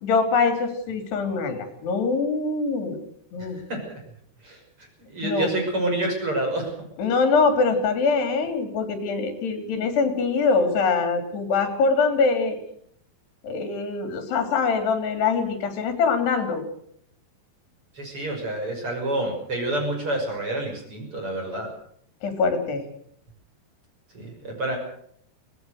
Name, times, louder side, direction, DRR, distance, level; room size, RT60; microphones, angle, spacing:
voice 1, 0.0-3.0 3.3-3.6 5.2-5.5 7.0-12.6 13.4-16.6 22.2-22.8, left 4 dB, 75° left, 7 dB, 5.2 m, -23 dB
voice 2, 3.4-4.0 4.4-4.6 5.1-6.7 17.9-21.7 24.1-24.8, right 1 dB, 30° right, 3 dB, 6.7 m, -28 dB
23.5 x 19.0 x 6.5 m, 0.66 s
omnidirectional pair, 4.7 m